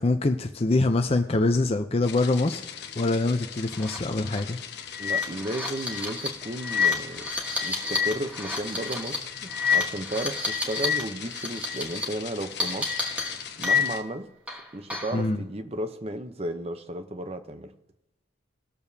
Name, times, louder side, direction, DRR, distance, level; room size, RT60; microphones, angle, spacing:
voice 1, 0.0-2.6 3.0-4.6 15.1-15.4, left 2 dB, 30° left, 0.5 m, -24 dB
sound 1, 2.0-14.0, left 8 dB, 60° left, 0.9 m, -40 dB
sound 2, 3.7-4.0 4.3-4.4 4.9-11.0 11.3-12.0 12.6-14.1 14.5-15.2, left 5 dB, 5° right, 1.6 m, -28 dB
voice 2, 5.0-7.3 7.6-13.0 13.6-14.3 14.7-17.7, right 1 dB, 35° right, 0.7 m, -34 dB
20.0 x 6.9 x 2.8 m
head